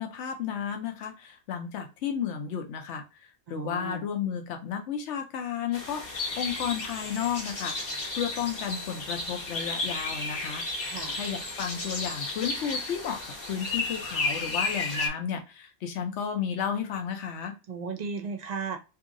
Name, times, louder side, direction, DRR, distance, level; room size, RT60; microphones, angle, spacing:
voice 1, 0.0-3.0 3.5-6.0 6.4-7.8 8.1-10.6 11.1-13.2 13.5-17.5, left 8 dB, 80° left, 5 dB, 0.9 m, -32 dB
voice 2, 3.5-4.1 10.9-11.2 17.7-18.8, right 5 dB, 55° right, 4 dB, 0.5 m, -35 dB
sound 1, 5.7-15.1, left 3 dB, 55° left, 1.0 m, -33 dB
2.7 x 2.7 x 2.5 m, 0.29 s
omnidirectional pair, 1.2 m